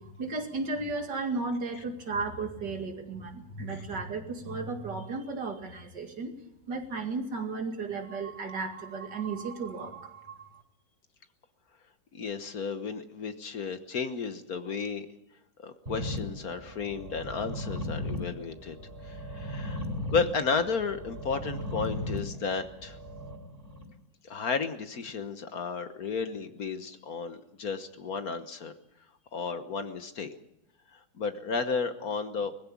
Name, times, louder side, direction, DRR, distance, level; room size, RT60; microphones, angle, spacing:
voice 1, 0.0-6.3 6.7-10.6, right 3 dB, 65° right, 4 dB, 2.8 m, -34 dB
voice 2, 12.1-15.1 15.6-18.8 19.0-19.9 20.1-23.0 24.2-28.7 29.3-30.3 30.9-32.5, left 5 dB, 55° left, 9 dB, 1.6 m, -33 dB
sound 1, 15.9-23.8, left 1 dB, 30° right, 4.2 m, -37 dB
20.5 x 15.5 x 8.6 m, 0.82 s
omnidirectional pair, 2.0 m